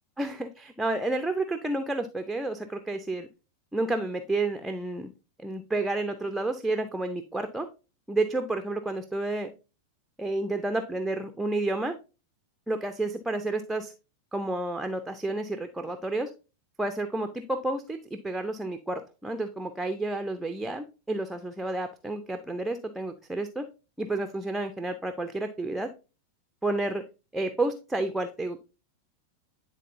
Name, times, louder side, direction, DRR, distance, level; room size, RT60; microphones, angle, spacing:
voice 1, 0.2-3.3 3.7-5.1 5.4-7.7 8.1-9.5 10.2-11.9 12.7-13.9 14.3-16.3 16.8-23.7 24.0-25.9 26.6-27.0 27.3-28.6, right 2 dB, 5° right, 7 dB, 0.5 m, -30 dB
10.0 x 3.9 x 2.6 m, 0.31 s
figure-of-eight pair, 90°, 0 cm